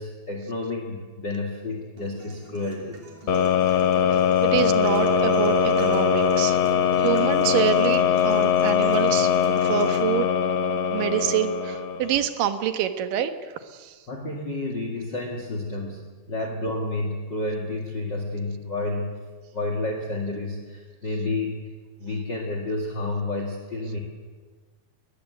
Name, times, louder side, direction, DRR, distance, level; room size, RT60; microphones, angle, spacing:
voice 1, 0.0-3.0 14.1-19.1 19.5-21.7 22.0-24.0, left 2 dB, 35° left, 2 dB, 2.3 m, -30 dB
sound 1, 2.0-10.0, right 3 dB, 60° right, 4.4 m, -44 dB
sound 2, 3.3-12.2, left 7 dB, 75° left, 1.1 m, -21 dB
voice 2, 4.4-6.6 7.0-9.3 9.6-10.3 10.9-13.3 13.8-13.9, right 10 dB, 75° right, 9 dB, 2.9 m, -26 dB
21.5 x 20.5 x 8.1 m, 1.4 s
omnidirectional pair, 3.9 m